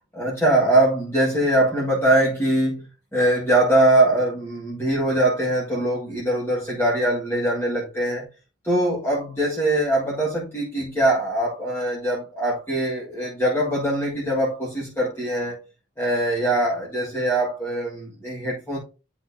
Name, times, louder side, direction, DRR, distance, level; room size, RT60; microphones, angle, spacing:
voice 1, 0.1-2.9 3.1-8.3 8.6-15.6 16.0-18.8, right 1 dB, 15° left, 1.7 m, -22 dB
10.5 x 4.2 x 2.7 m
head